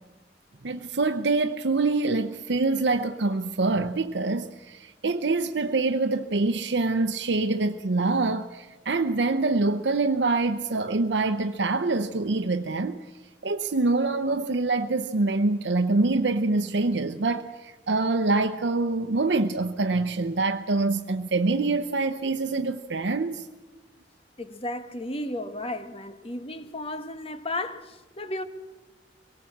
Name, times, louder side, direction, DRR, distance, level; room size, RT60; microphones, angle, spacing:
voice 1, 0.6-13.1 13.4-23.5, right 3 dB, 75° right, 0.8 m, -25 dB
voice 2, 24.4-28.4, left 1 dB, 30° left, 1.3 m, -34 dB
23.5 x 18.5 x 7.3 m
head